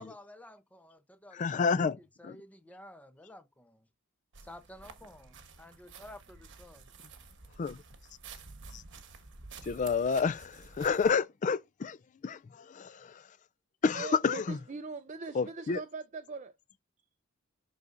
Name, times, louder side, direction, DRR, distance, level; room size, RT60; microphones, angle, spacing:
voice 1, 0.0-3.9 4.4-6.9, left 1 dB, 5° left, 0.7 m, -52 dB
voice 2, 1.3-2.4 7.6-7.8 8.7-8.8 9.6-12.0 12.2-13.3 13.8-14.6 15.3-15.8, left 5 dB, 35° left, 0.3 m, -30 dB
sound 1, 4.3-11.1, right 4 dB, 55° right, 1.1 m, -51 dB
voice 3, 13.9-16.5, right 3 dB, 35° right, 0.5 m, -41 dB
11.5 x 4.0 x 2.5 m
head